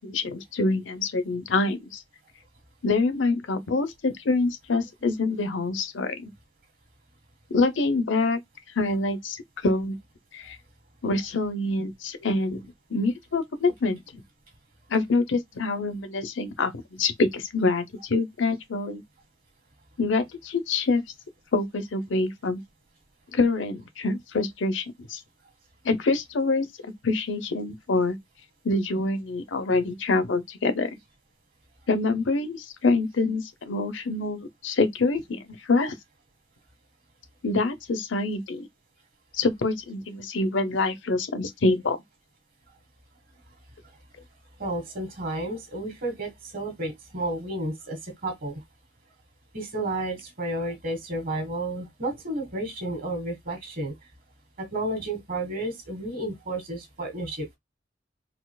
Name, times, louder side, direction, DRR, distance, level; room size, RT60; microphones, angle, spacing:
voice 1, 0.0-2.0 2.8-6.3 7.5-8.4 8.8-10.0 10.3-10.6 11.0-14.2 14.9-19.0 20.0-21.0 21.5-22.6 23.3-25.2 25.8-26.7 27.0-28.2 28.6-30.9 31.9-35.4 35.7-35.9 37.4-38.7 39.4-42.0, left 3 dB, 75° left, 0.7 m, -26 dB
voice 2, 44.6-48.6 49.5-53.9 54.6-57.6, right 1 dB, 50° right, 1.5 m, -32 dB
4.2 x 2.4 x 2.2 m
head